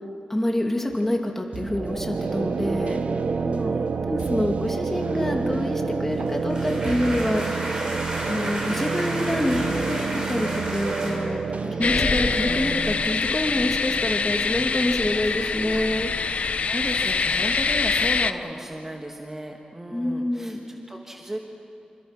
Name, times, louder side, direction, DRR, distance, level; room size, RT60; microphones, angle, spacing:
voice 1, 0.3-3.0 4.1-7.6 8.2-9.6 9.9-11.4 11.8-16.1 19.9-20.6, left 1 dB, 10° left, 2 dB, 2.6 m, -27 dB
sound 1, 1.5-15.2, right 5 dB, 60° right, 0.9 m, -29 dB
voice 2, 3.4-3.9 11.6-11.8 15.2-15.8 16.1-16.2 16.7-21.4, right 1 dB, 15° right, 1 dB, 1.6 m, -35 dB
sound 2, 6.1-11.1, right 1 dB, 35° right, 6.2 m, -32 dB
sound 3, 11.8-18.3, left 5 dB, 60° left, 0.7 m, -24 dB
27.0 x 26.0 x 6.1 m, 2.7 s
wide cardioid pair, 125°, 3 cm